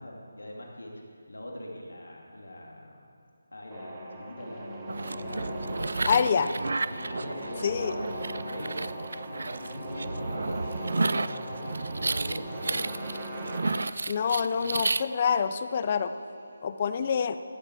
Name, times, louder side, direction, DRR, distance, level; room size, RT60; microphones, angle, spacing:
voice 1, 0.0-3.0 3.5-6.6 6.9-8.9 9.2-12.8, left 1 dB, 90° left, -1 dB, 2.4 m, -42 dB
sound 1, 3.7-13.7, right 1 dB, 20° right, 1.2 m, -39 dB
sound 2, 4.9-15.0, right 3 dB, 70° right, 0.3 m, -32 dB
voice 2, 6.1-6.5 7.6-8.0 14.1-16.1 16.6-17.4, left 6 dB, 35° left, 11 dB, 0.5 m, -26 dB
sound 3, 8.9-16.7, equal, 10° left, 3.5 m, -53 dB
13.5 x 7.6 x 6.2 m, 2.3 s
figure-of-eight pair, 160°, 0 cm